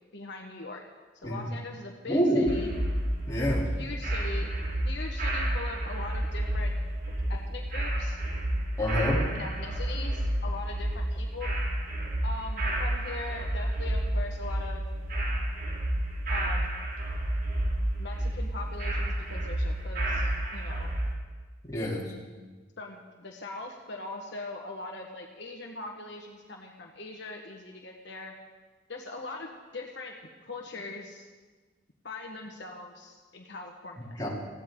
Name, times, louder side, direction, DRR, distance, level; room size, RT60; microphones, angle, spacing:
voice 1, 0.1-0.8 1.2-2.7 3.8-6.7 7.3-8.4 9.3-11.5 12.2-14.8 16.3-16.7 18.0-20.9 22.8-28.3 28.9-30.2 30.4-31.3 32.0-34.3, left 3 dB, 65° left, 0 dB, 1.5 m, -41 dB
voice 2, 2.1-2.5 3.3-3.7 8.8-9.2 21.7-22.0 34.2-34.3, equal, 20° left, -5 dB, 3.4 m, -26 dB
sound 1, 2.5-21.1, right 1 dB, 50° right, 2.4 m, -30 dB
19.5 x 15.5 x 3.9 m, 1.3 s
head